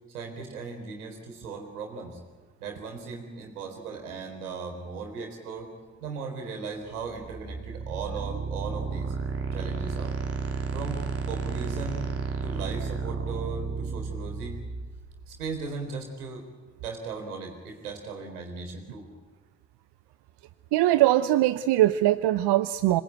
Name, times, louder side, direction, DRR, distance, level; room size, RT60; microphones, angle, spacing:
voice 1, 0.1-2.2 2.6-5.7 6.0-9.1 9.5-10.2 10.7-12.0 12.4-14.6 15.3-16.4 16.8-19.1, right 4 dB, 85° right, 3 dB, 3.8 m, -37 dB
sound 1, 6.9-15.7, right 4 dB, 30° right, 3.5 m, -33 dB
voice 2, 20.7-23.0, right 15 dB, 65° right, 13 dB, 0.9 m, -21 dB
26.5 x 19.5 x 9.2 m, 1.3 s
hypercardioid pair, 40°, 44 cm